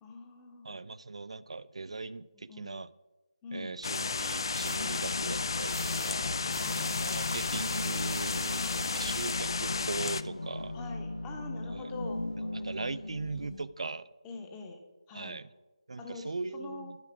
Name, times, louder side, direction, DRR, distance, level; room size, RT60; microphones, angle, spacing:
voice 1, 0.0-0.7 2.5-2.8 3.4-3.8 6.6-7.0 8.6-9.2 10.7-12.2 12.5-13.2 14.2-15.4 16.0-17.0, left 3 dB, 10° left, 3 dB, 0.8 m, -45 dB
voice 2, 0.6-2.9 3.5-10.8 11.7-11.9 12.5-14.1 15.1-15.5 15.9-17.0, right 3 dB, 65° right, 16 dB, 0.4 m, -39 dB
sound 1, 3.8-10.2, left 4 dB, 45° left, 0.4 m, -33 dB
sound 2, 4.4-13.6, left 2 dB, 90° left, 1.2 m, -38 dB
sound 3, 4.5-4.8 5.6-6.2 6.5-9.4, right 8 dB, 20° right, 0.7 m, -47 dB
10.5 x 4.9 x 6.0 m, 1.1 s
figure-of-eight pair, 165°, 3 cm